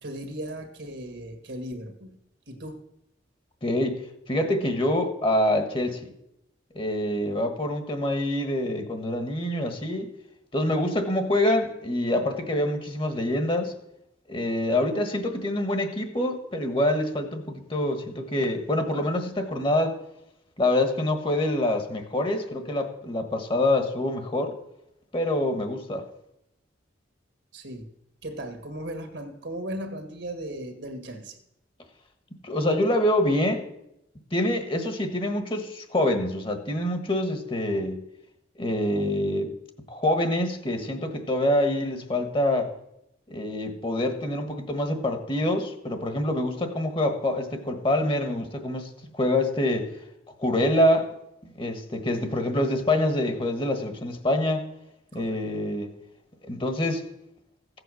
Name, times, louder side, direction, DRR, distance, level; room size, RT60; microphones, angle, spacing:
voice 1, 0.0-2.2 2.5-2.8 27.5-27.9 28.2-31.4 55.1-55.4, right 1 dB, 70° right, 1.8 m, -37 dB
voice 2, 3.6-6.0 6.7-10.1 10.5-13.7 14.3-20.0 20.6-24.5 25.1-26.0 32.4-33.6 34.3-38.0 38.6-39.5 39.9-42.7 43.3-49.9 50.4-51.1 51.6-54.7 55.1-55.9 56.4-57.0, left 1 dB, 30° left, 1.4 m, -26 dB
15.5 x 8.0 x 6.3 m
head